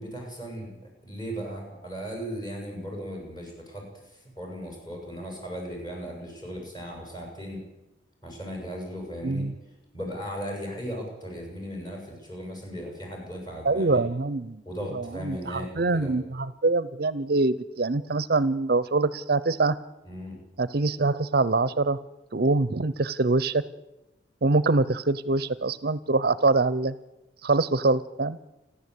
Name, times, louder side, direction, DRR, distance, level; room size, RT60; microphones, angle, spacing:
voice 1, 0.0-7.6 8.2-9.5 9.9-14.0 14.6-16.1 20.0-20.4, equal, 20° left, 0 dB, 7.8 m, -37 dB
voice 2, 13.6-14.6 14.9-19.8 20.6-22.0 22.3-23.6 24.4-26.9 27.4-28.4, right 3 dB, 55° right, 17 dB, 0.7 m, -24 dB
29.5 x 11.5 x 8.4 m, 0.98 s
head